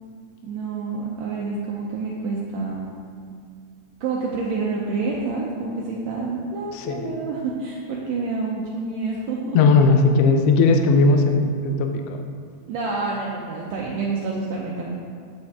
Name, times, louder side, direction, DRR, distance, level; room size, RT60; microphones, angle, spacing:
voice 1, 0.4-2.9 4.0-9.6 12.7-14.9, right 4 dB, 75° right, -3 dB, 1.7 m, -28 dB
voice 2, 6.7-7.1 9.5-12.2, left 3 dB, 85° left, 5 dB, 1.4 m, -18 dB
8.5 x 5.3 x 3.5 m, 2.1 s
omnidirectional pair, 3.4 m